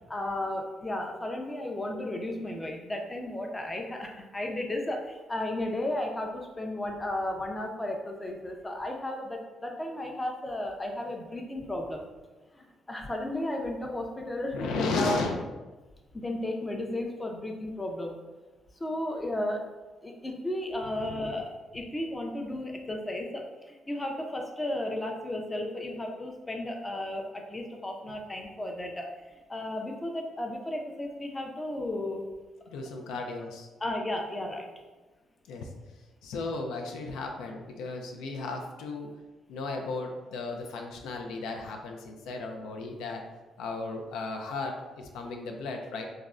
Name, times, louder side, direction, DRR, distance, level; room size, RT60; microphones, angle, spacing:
voice 1, 0.1-12.0 12.5-15.2 16.1-18.2 18.8-19.7 20.0-29.1 29.5-32.3 33.1-33.2 33.8-34.7, left 1 dB, 20° left, 2 dB, 0.4 m, -34 dB
voice 2, 14.5-15.4 21.0-21.4 32.7-33.7 35.5-35.7 36.2-39.1 39.5-43.2 43.6-46.0, left 3 dB, 90° left, 2 dB, 0.3 m, -35 dB
3.4 x 2.0 x 2.4 m, 1.2 s
cardioid pair, 90°, 0 cm